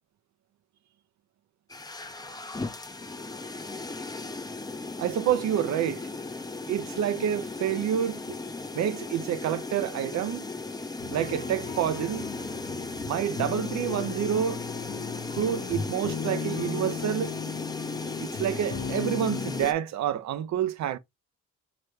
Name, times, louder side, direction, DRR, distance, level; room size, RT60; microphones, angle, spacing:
sound 1, 1.7-19.7, left 3 dB, 15° left, 0.6 m, -36 dB
voice 1, 5.0-6.1 6.7-8.4 8.7-10.4 11.1-12.2 13.1-14.6 15.3-17.3 18.2-21.0, right 10 dB, 65° right, 0.7 m, -28 dB
sound 2, 11.0-19.6, left 6 dB, 50° left, 1.0 m, -37 dB
6.0 x 2.2 x 3.2 m
cardioid pair, 90°, 30 cm